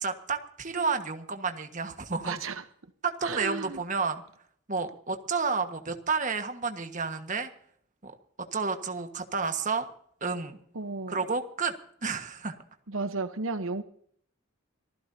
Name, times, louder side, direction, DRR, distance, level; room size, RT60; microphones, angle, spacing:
voice 1, 0.0-2.4 3.0-4.2 4.7-7.5 8.0-8.1 8.5-9.8 10.2-10.6 11.1-11.7 12.0-12.6, right 4 dB, 40° right, 1.5 m, -30 dB
voice 2, 2.2-2.6 3.2-3.8 10.7-11.2 12.9-13.8, right 3 dB, 90° right, 1.0 m, -33 dB
26.0 x 15.5 x 2.8 m
head